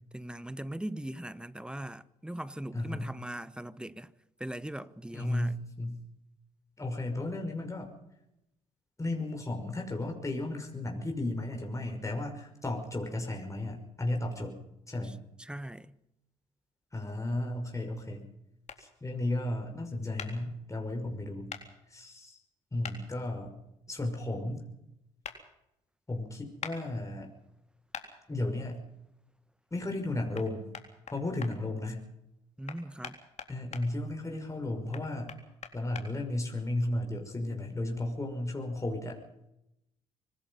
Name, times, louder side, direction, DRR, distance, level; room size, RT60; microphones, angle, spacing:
voice 1, 0.1-4.1 4.4-5.5 15.0-16.0 32.6-33.2, right 1 dB, 5° right, 1.3 m, -40 dB
voice 2, 2.7-3.1 5.1-6.0 6.8-7.9 9.0-14.6 14.9-15.2 16.9-18.3 18.8-21.5 21.9-22.4 22.7-23.5 23.9-24.7 26.1-27.3 28.3-28.8 29.7-30.7 31.1-32.1 33.5-35.3 35.7-39.2, left 1 dB, 20° left, 5.9 m, -34 dB
sound 1, 18.7-18.8 20.2-20.3 21.5-21.6 22.8-23.0 25.2-25.4 26.6-26.8 27.9-28.1 30.3-30.5 30.7-31.5 32.7-33.8 34.9-36.1, left 6 dB, 50° left, 3.8 m, -41 dB
25.5 x 19.0 x 5.6 m
hypercardioid pair, 55°, 15 cm